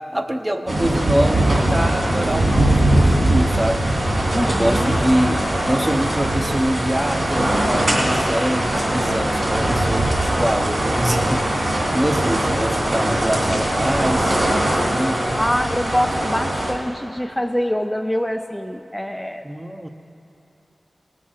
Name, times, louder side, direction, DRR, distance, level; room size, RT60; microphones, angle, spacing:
voice 1, 0.1-3.8 4.5-15.4 19.4-19.9, right 1 dB, 20° right, 6 dB, 0.8 m, -24 dB
sound 1, 0.7-16.7, right 1 dB, 55° right, 2.6 m, -20 dB
voice 2, 4.3-5.0 15.3-19.4, equal, 10° left, 5 dB, 0.4 m, -24 dB
17.0 x 5.8 x 6.4 m, 2.9 s
wide cardioid pair, 60°, 0 cm